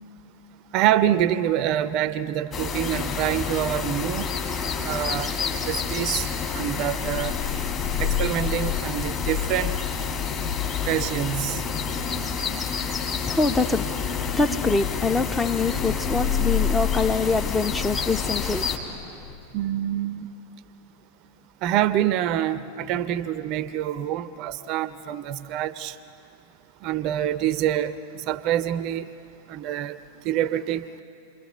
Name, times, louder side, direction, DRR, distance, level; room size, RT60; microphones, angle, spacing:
voice 1, 0.7-4.3 4.8-5.3 5.7-6.3 6.5-7.4 8.0-9.8 10.8-11.6 19.5-20.3 21.6-25.9 26.8-28.0 28.3-29.1 29.5-30.0 30.3-30.8, right 11 dB, 40° right, 0.6 m, -26 dB
sound 1, 2.5-18.8, left 5 dB, 25° left, 2.4 m, -29 dB
sound 2, 7.0-19.6, left 10 dB, 55° left, 0.8 m, -31 dB
voice 2, 12.9-13.9 14.3-19.3, left 3 dB, 10° left, 0.7 m, -25 dB
29.0 x 22.0 x 4.4 m
figure-of-eight pair, 90°, 0 cm